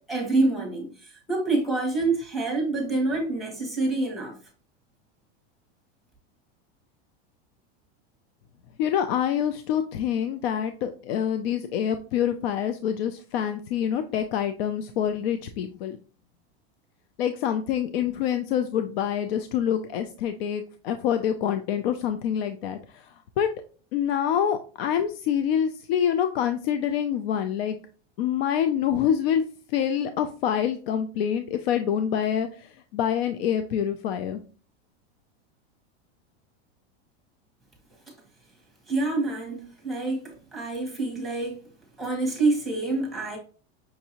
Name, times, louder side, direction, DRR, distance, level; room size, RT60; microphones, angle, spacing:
voice 1, 0.1-4.3 38.9-41.6 42.0-43.4, right 2 dB, ahead, 1.1 m, -27 dB
voice 2, 8.8-16.0 17.2-23.5 23.9-27.8 28.2-29.4 29.7-34.4, left 9 dB, 70° left, 0.5 m, -26 dB
5.8 x 2.7 x 2.9 m
supercardioid pair, 160°, 31 cm